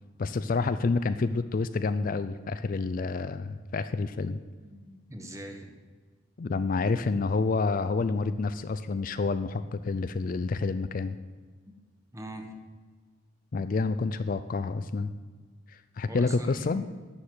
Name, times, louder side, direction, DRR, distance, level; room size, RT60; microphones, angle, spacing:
voice 1, 0.2-4.4 6.4-11.2 13.5-15.1 15.7-16.8, left 3 dB, 40° left, 12 dB, 0.4 m, -28 dB
voice 2, 4.6-5.7 12.1-12.5 16.1-16.9, equal, 15° right, 4 dB, 1.5 m, -42 dB
11.5 x 6.8 x 9.3 m, 1.5 s
head